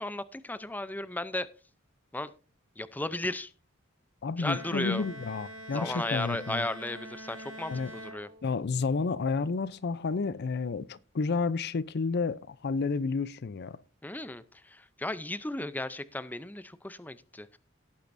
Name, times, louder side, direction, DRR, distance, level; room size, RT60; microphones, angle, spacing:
voice 1, 0.0-1.5 2.1-2.3 2.8-3.5 4.4-5.0 5.7-8.3 14.0-17.6, left 1 dB, 10° left, 0.5 m, -35 dB
voice 2, 4.2-6.7 7.7-7.9 8.4-13.8, left 4 dB, 55° left, 0.5 m, -31 dB
Bowed string instrument, 4.4-8.8, equal, 75° right, 1.4 m, -45 dB
17.5 x 8.7 x 2.6 m
head